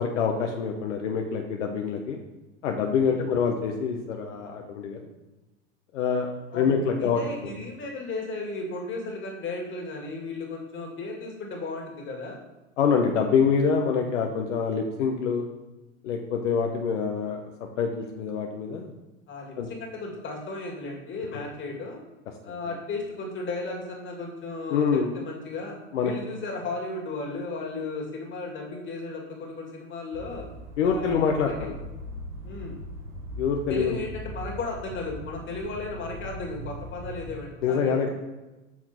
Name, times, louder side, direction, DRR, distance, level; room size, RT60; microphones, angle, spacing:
voice 1, 0.0-2.2 2.6-5.0 5.9-7.5 12.8-15.4 16.0-17.4 17.8-18.9 19.6-19.7 21.3-21.4 24.7-25.1 25.9-26.1 30.8-31.5 33.4-34.0 37.6-38.1, left 6 dB, 70° left, 3 dB, 1.0 m, -25 dB
voice 2, 7.0-12.4 19.3-22.0 22.4-25.8 26.0-30.5 30.8-31.7 32.4-32.8 33.7-38.1, left 3 dB, 30° left, 0 dB, 2.3 m, -35 dB
sound 1, 30.1-37.4, equal, 75° right, 1.6 m, -40 dB
6.0 x 5.9 x 4.5 m, 1.1 s
hypercardioid pair, 95°, 38 cm